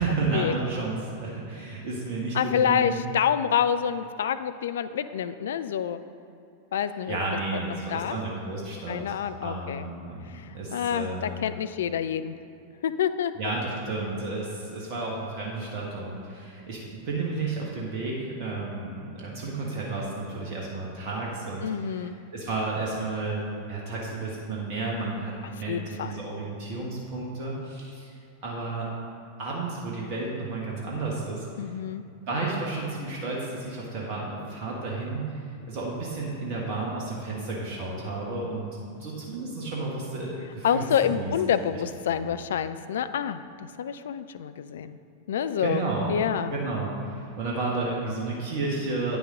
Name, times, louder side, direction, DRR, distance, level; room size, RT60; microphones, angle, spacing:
voice 1, 0.0-3.0 6.9-11.4 13.3-28.1 28.4-28.9 29.4-31.5 32.3-38.7 39.0-41.4 41.7-41.8 42.1-42.3 45.6-46.1 46.4-47.0 47.4-49.2, right 3 dB, 45° right, -3 dB, 1.4 m, -32 dB
voice 2, 2.3-6.0 6.7-7.2 7.5-8.2 8.9-9.9 10.3-12.4 12.8-13.3 21.6-22.1 25.7-26.2 31.6-32.0 40.6-45.0 45.3-45.8 46.1-46.5, left 8 dB, 60° left, 12 dB, 0.3 m, -27 dB
9.0 x 6.9 x 3.7 m, 2.6 s
figure-of-eight pair, 90°, 0 cm